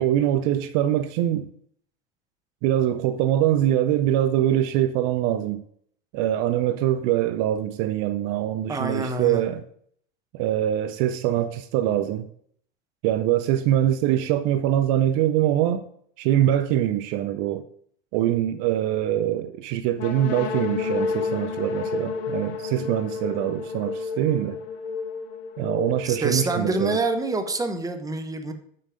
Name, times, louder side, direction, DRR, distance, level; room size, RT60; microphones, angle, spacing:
voice 1, 0.0-1.5 2.6-5.6 6.1-9.6 10.3-12.3 13.0-15.8 16.2-17.6 18.1-24.6 25.6-27.0, right 12 dB, 55° right, 0.6 m, -23 dB
voice 2, 8.7-9.4 26.0-28.5, right 3 dB, 10° right, 1.0 m, -26 dB
sound 1, 20.0-27.7, left 5 dB, 75° left, 1.0 m, -31 dB
6.4 x 5.7 x 5.0 m
hypercardioid pair, 100°, 33 cm